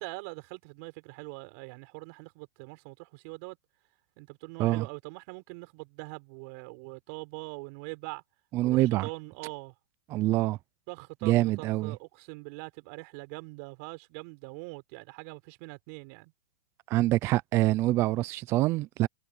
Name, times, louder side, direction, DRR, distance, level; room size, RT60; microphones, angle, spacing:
voice 1, 0.0-3.6 4.2-8.2 8.6-9.7 10.9-16.3, right 29 dB, 40° right, 6.2 m, -43 dB
voice 2, 8.5-9.1 10.1-10.6 11.2-11.9 16.9-19.1, right 17 dB, 20° right, 0.4 m, -25 dB
hypercardioid pair, 160°, 12 cm